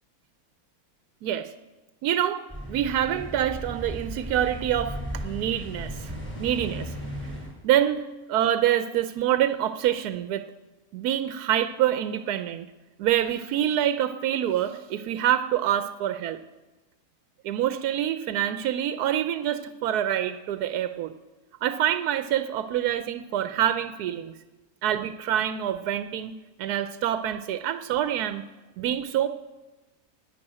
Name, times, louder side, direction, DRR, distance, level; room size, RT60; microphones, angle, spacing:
voice 1, 2.0-2.4 2.7-5.0 5.2-6.1 6.4-6.9 7.6-10.5 10.9-12.7 13.0-16.4 17.4-21.1 21.6-24.3 24.8-26.3 26.6-28.4 28.8-29.3, right 11 dB, 90° right, 10 dB, 1.1 m, -26 dB
sound 1, 2.5-7.5, equal, 5° left, 5.8 m, -36 dB
11.0 x 9.1 x 8.6 m, 1.1 s
omnidirectional pair, 1.6 m